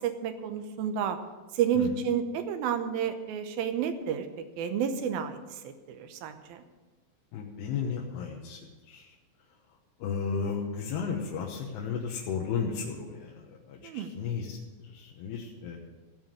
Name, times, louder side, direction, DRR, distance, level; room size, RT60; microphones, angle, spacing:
voice 1, 0.0-1.2 1.5-4.3 4.6-5.4 5.6-6.6 13.8-14.1, right 8 dB, 75° right, 7 dB, 2.4 m, -30 dB
voice 2, 7.3-8.6 8.9-9.1 10.0-14.6 14.8-15.8, left 6 dB, 70° left, -2 dB, 3.0 m, -34 dB
16.5 x 5.5 x 9.2 m, 1.2 s
omnidirectional pair, 5.2 m